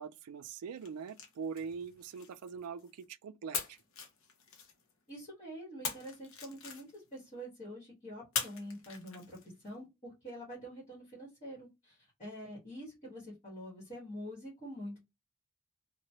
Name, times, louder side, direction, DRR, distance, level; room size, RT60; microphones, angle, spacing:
voice 1, 0.0-3.8, right 6 dB, 85° right, 0.3 m, -43 dB
sound 1, 0.8-3.0 3.5-5.1 5.8-7.2 8.3-9.7, left 6 dB, 60° left, 0.7 m, -42 dB
voice 2, 5.1-15.0, equal, 30° left, 1.3 m, -46 dB
3.0 x 2.1 x 2.7 m
head